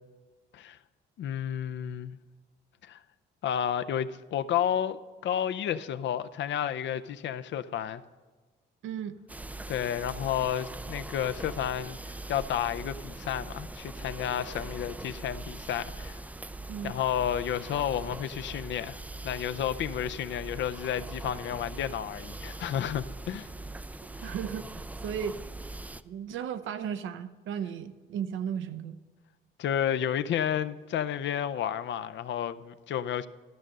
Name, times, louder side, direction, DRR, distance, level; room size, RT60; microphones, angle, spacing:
voice 1, 1.2-2.2 2.8-3.0 3.4-8.0 9.7-16.3 16.8-23.5 24.2-24.3 29.6-33.3, left 9 dB, 65° left, 0.5 m, -31 dB
voice 2, 8.8-9.2 16.7-16.9 24.2-25.5 26.0-29.0, right 8 dB, 80° right, 0.7 m, -35 dB
sound 1, 9.3-26.0, right 2 dB, 10° right, 0.3 m, -41 dB
12.5 x 6.2 x 6.5 m
cardioid pair, 90°, 20 cm